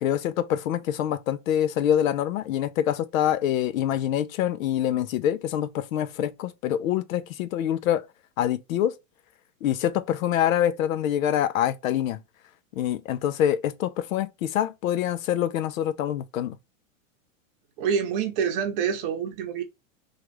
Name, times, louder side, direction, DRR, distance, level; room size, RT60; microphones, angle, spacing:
voice 1, 0.0-8.1 8.4-8.9 9.6-12.2 12.8-16.6, left 11 dB, 70° left, 0.6 m, -25 dB
voice 2, 17.8-19.6, right 7 dB, 40° right, 0.7 m, -26 dB
3.1 x 2.4 x 3.0 m
supercardioid pair, 145°, 42 cm